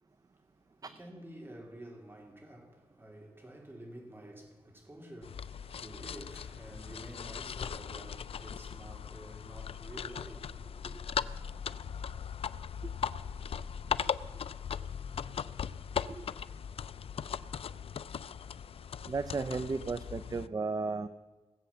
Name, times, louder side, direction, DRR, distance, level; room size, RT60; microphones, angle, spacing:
voice 1, 0.0-11.0, right 1 dB, 20° right, 2.8 m, -50 dB
sound 1, 5.2-20.5, left 7 dB, 70° left, 0.4 m, -39 dB
voice 2, 19.1-21.1, right 4 dB, 40° right, 0.5 m, -34 dB
17.5 x 8.1 x 7.1 m
wide cardioid pair, 95°, 10 cm